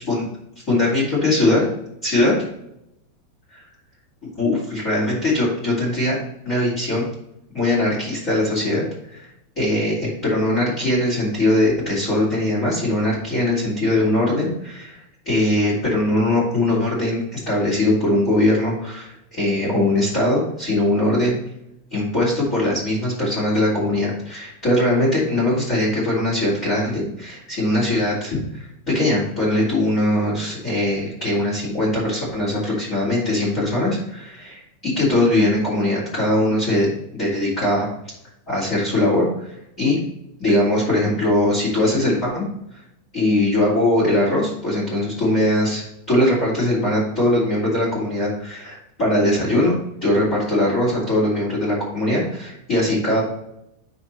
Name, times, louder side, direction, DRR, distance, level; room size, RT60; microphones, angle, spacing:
voice 1, 0.7-1.7 2.0-2.3 3.5-3.6 4.2-6.2 6.4-7.0 7.5-8.8 9.1-9.2 9.5-15.0 15.2-21.4 21.9-37.9 38.5-39.5 39.8-40.0 40.4-42.4 43.1-53.2, left 1 dB, 20° left, -7 dB, 2.9 m, -21 dB
10.0 x 4.3 x 4.3 m, 0.80 s
omnidirectional pair, 5.5 m